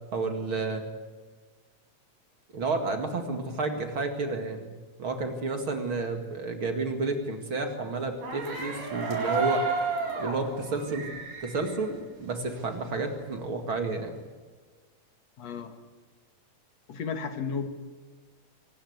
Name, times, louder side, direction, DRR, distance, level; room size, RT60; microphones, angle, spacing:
voice 1, 0.1-0.8 2.5-4.7 5.0-9.9 10.2-11.1 11.4-14.2, right 3 dB, 45° right, 5 dB, 2.6 m, -31 dB
sound 1, 8.2-12.8 13.1-14.2, right 4 dB, 80° right, 5.6 m, -33 dB
voice 2, 15.4-15.7 16.9-17.7, left 5 dB, 60° left, 7 dB, 3.0 m, -33 dB
24.5 x 19.0 x 8.1 m, 1.4 s
omnidirectional pair, 3.6 m